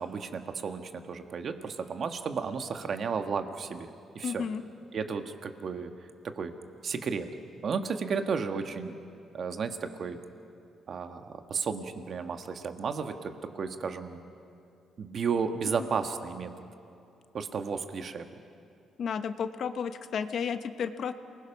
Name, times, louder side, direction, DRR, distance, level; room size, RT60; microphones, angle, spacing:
voice 1, 0.0-3.9 4.1-4.4 4.9-5.9 6.2-6.5 6.8-7.3 7.6-8.9 9.3-10.2 10.9-14.2 15.0-16.5 17.3-18.2, right 5 dB, 55° right, 7 dB, 1.5 m, -33 dB
voice 2, 4.2-4.6 19.0-21.1, left 7 dB, 60° left, 10 dB, 1.0 m, -32 dB
28.0 x 20.5 x 5.9 m, 2.6 s
cardioid pair, 90°, 0 cm